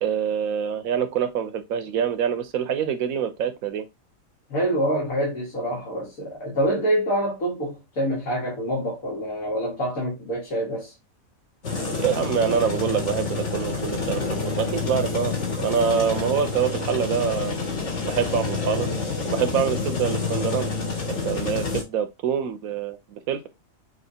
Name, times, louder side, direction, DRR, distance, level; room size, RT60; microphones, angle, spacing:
voice 1, 0.0-3.8 12.0-17.6 18.0-18.9 19.2-20.7 21.1-23.5, right 8 dB, 80° right, 1.2 m, -25 dB
voice 2, 4.5-10.9, right 1 dB, 85° left, 2.3 m, -26 dB
sound 1, 11.6-21.8, left 4 dB, 60° left, 1.7 m, -28 dB
6.2 x 2.9 x 2.8 m
omnidirectional pair, 1.4 m